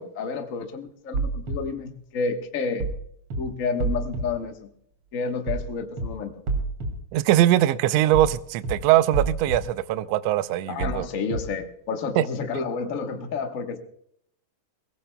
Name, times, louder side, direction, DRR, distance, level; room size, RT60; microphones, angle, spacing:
voice 1, 0.0-2.9 3.4-4.7 5.1-6.3 10.7-13.8, left 4 dB, 45° left, 1.0 m, -30 dB
sound 1, 1.1-1.6 2.8-3.0 3.3-3.4 3.8-4.2 5.5-5.7 6.0-6.1 6.5-6.9 8.1-8.4 8.6-8.7 9.1-9.6 10.8-11.0 11.3-11.4, right 3 dB, 50° right, 3.5 m, -27 dB
voice 2, 7.1-11.1 12.1-12.3, right 13 dB, 75° right, 1.6 m, -21 dB
22.5 x 18.0 x 2.3 m
omnidirectional pair, 3.3 m